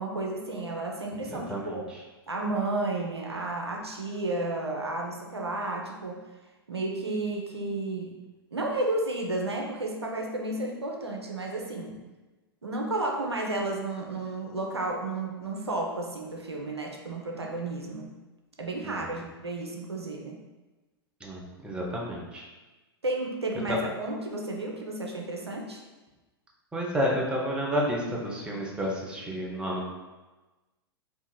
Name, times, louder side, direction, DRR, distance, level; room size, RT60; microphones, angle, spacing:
voice 1, 0.0-1.9 2.3-6.2 6.7-8.1 8.5-12.0 12.6-18.1 18.6-20.4 23.0-25.8, right 2 dB, 90° right, 0 dB, 0.4 m, -32 dB
voice 2, 1.3-1.8 18.8-19.2 21.2-22.4 23.7-23.8 26.7-29.9, equal, 5° right, -2 dB, 0.4 m, -30 dB
2.8 x 2.4 x 2.2 m, 1.2 s
figure-of-eight pair, 100°, 13 cm